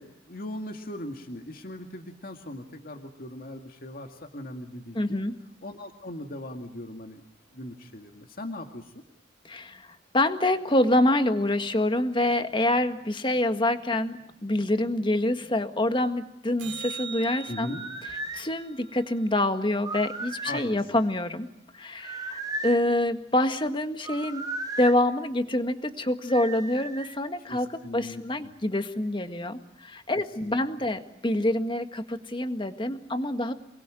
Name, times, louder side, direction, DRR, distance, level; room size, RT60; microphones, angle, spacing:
voice 1, 0.0-5.2 5.6-7.2 7.5-8.9 17.5-17.9 18.3-18.4 20.4-21.0 27.4-28.5 30.4-30.8, left 1 dB, 50° left, 4 dB, 2.2 m, -39 dB
voice 2, 4.9-5.4 9.5-9.9 10.1-17.7 18.3-21.5 21.7-24.5 24.8-33.5, left 1 dB, 25° left, 8 dB, 1.7 m, -26 dB
sound 1, 16.6-21.1 27.6-27.7, right 6 dB, 70° right, 2.6 m, -43 dB
sound 2, 17.6-18.4 19.8-20.7 22.0-22.9 24.0-25.0 26.3-27.2, right 2 dB, 20° right, 1.6 m, -35 dB
28.5 x 21.0 x 9.1 m, 0.77 s
head